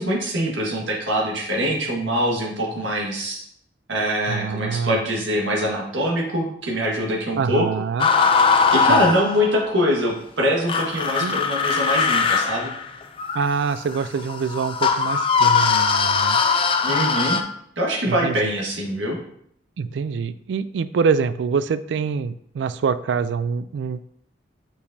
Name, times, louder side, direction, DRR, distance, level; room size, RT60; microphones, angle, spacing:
voice 1, 0.0-3.4 3.9-7.7 8.0-8.1 8.7-12.7 16.8-17.4 17.8-19.2, equal, 90° right, -1 dB, 1.5 m, -23 dB
voice 2, 4.3-5.0 7.4-8.1 8.9-9.1 11.2-11.4 13.3-16.4 18.1-18.5 19.8-24.0, right 5 dB, 75° right, 15 dB, 0.3 m, -25 dB
sound 1, 8.0-9.7 10.7-17.4, left 5 dB, 30° left, 0.4 m, -20 dB
6.2 x 5.7 x 2.7 m, 0.68 s
head